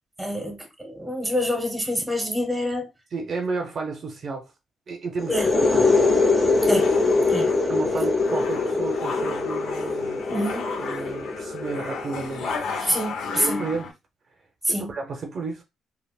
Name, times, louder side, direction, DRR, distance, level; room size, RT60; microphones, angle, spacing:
voice 1, 0.2-2.9 5.3-5.5 6.7-6.9 7.3-7.5 10.3-10.7 12.8-13.6 14.6-14.9, equal, 5° right, 0.9 m, -26 dB
voice 2, 3.1-4.5 4.9-5.4 5.7-6.1 7.7-10.3 10.5-12.5 13.3-13.9 14.7-15.6, right 4 dB, 50° right, 0.6 m, -32 dB
sound 1, 5.2-12.7, left 3 dB, 30° left, 0.7 m, -23 dB
sound 2, 5.7-13.9, left 4 dB, 75° left, 0.6 m, -34 dB
3.3 x 2.1 x 2.3 m
cardioid pair, 90°, 0 cm